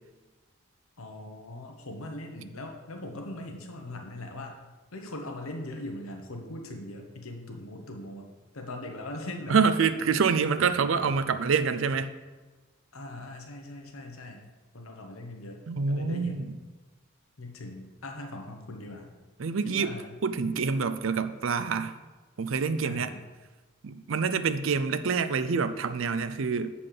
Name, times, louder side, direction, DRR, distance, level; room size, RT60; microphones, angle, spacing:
voice 1, 1.0-4.6 4.9-8.3 8.5-9.6 10.2-10.3 12.9-14.4 14.7-15.6 15.9-16.6 17.4-19.1 19.6-20.1 22.8-23.3, left 1 dB, 85° left, 3 dB, 1.0 m, -40 dB
voice 2, 9.5-12.1 15.7-16.4 19.4-19.9 20.2-21.9 22.4-23.1 23.8-26.7, right 5 dB, 65° right, 11 dB, 0.5 m, -26 dB
7.5 x 4.2 x 6.6 m, 1.2 s
head